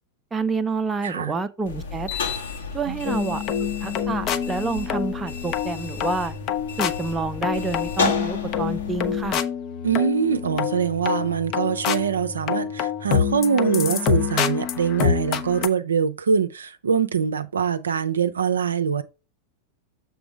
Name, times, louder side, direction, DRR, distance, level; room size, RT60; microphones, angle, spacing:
voice 1, 0.3-2.1 2.7-3.4 3.8-6.3 6.8-9.4, right 4 dB, 15° right, 0.6 m, -28 dB
voice 2, 1.0-1.3 2.9-3.0 9.8-19.0, right 7 dB, 70° right, 0.5 m, -23 dB
sound 1, 1.7-9.4, left 4 dB, 65° left, 1.6 m, -32 dB
sound 2, 3.1-15.7, left 8 dB, 35° left, 0.7 m, -27 dB
7.0 x 3.9 x 4.4 m
figure-of-eight pair, 90°, 0 cm